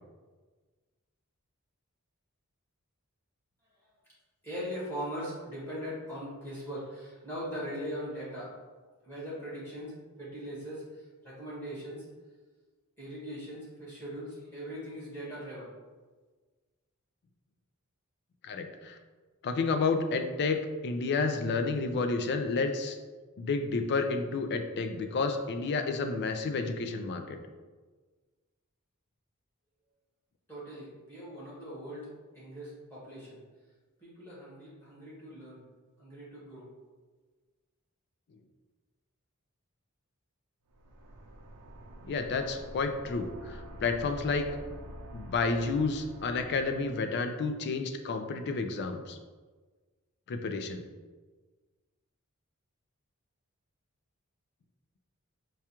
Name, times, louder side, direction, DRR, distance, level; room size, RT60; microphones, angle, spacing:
voice 1, 4.4-8.5 9.0-12.0 13.0-15.7 30.5-32.1 32.3-33.4 34.0-35.6 36.0-36.7, equal, 10° left, -9 dB, 1.5 m, -40 dB
voice 2, 18.4-19.0 19.4-23.0 23.4-27.4 42.0-44.6 45.1-49.2 50.3-50.9, left 4 dB, 50° left, 6 dB, 0.4 m, -30 dB
sound 1, 40.7-47.2, equal, 90° right, 0.6 m, -47 dB
4.7 x 2.3 x 2.9 m, 1.4 s
head